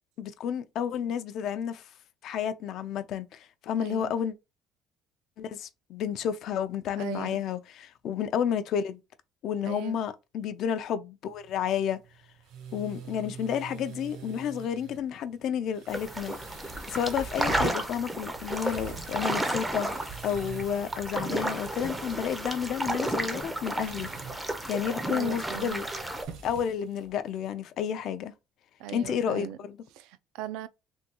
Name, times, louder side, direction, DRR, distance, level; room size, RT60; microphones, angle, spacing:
voice 1, 0.2-1.9 2.2-4.3 5.4-9.0 9.4-12.0 12.7-16.3 16.9-24.1 24.7-25.9 26.4-28.3 28.9-29.8, left 8 dB, 50° left, 0.4 m, -31 dB
voice 2, 3.7-4.1 7.0-7.4 9.6-10.0 25.1-25.8 28.8-29.6 29.9-30.7, right 13 dB, 85° right, 0.3 m, -38 dB
sound 1, 11.3-27.5, right 6 dB, 65° right, 0.8 m, -45 dB
sound 2, 15.9-26.2, right 1 dB, 5° right, 0.4 m, -33 dB
3.5 x 2.2 x 2.9 m
cardioid pair, 170°, 0 cm